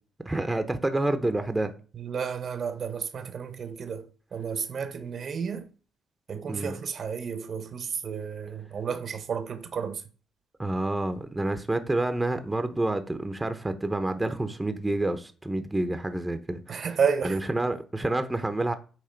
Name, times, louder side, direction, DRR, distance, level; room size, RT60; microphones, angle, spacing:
voice 1, 0.2-1.7 6.5-6.7 10.6-16.8 17.2-18.7, right 2 dB, 10° right, 0.8 m, -28 dB
voice 2, 1.9-5.7 6.3-10.0 16.7-17.4, right 6 dB, 50° right, 0.9 m, -31 dB
8.7 x 3.1 x 4.5 m
cardioid pair, 90°, 0 cm